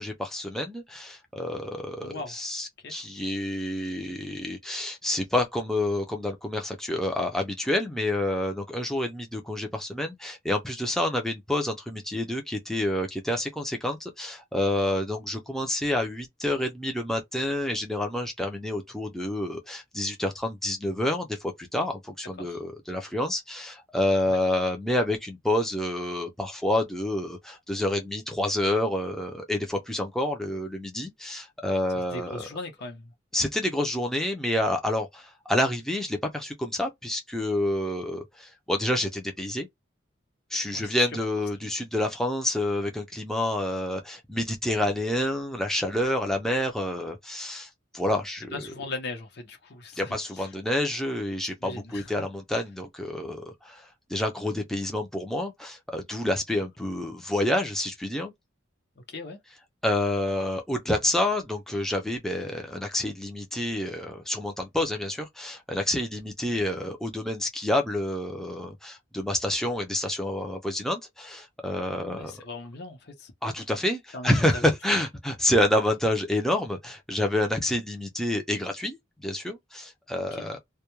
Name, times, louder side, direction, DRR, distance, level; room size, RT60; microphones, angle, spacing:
voice 1, 0.0-32.4 33.3-39.7 40.5-48.6 50.0-58.3 59.8-72.3 73.4-80.6, left 1 dB, ahead, 0.5 m, -28 dB
voice 2, 2.0-2.4 2.8-3.0 22.4-22.6 24.2-24.4 31.9-33.1 40.7-41.2 41.6-41.7 48.5-50.5 51.6-52.1 59.0-59.4 72.1-73.3 74.1-74.7 80.3-80.6, left 2 dB, 55° left, 0.7 m, -39 dB
2.2 x 2.1 x 3.0 m
head